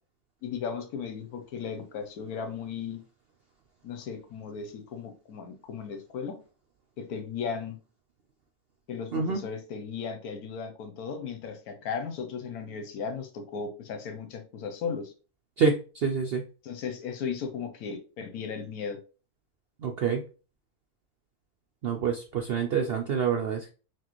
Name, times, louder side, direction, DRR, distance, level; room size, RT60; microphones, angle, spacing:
voice 1, 0.4-3.0 3.8-6.4 7.0-7.8 8.9-15.1 16.6-19.0, left 6 dB, 75° left, 7 dB, 1.2 m, -36 dB
voice 2, 9.1-9.4 15.6-16.4 19.8-20.2 21.8-23.7, right 6 dB, 70° right, 3 dB, 0.5 m, -27 dB
6.0 x 2.4 x 3.0 m, 0.35 s
omnidirectional pair, 1.6 m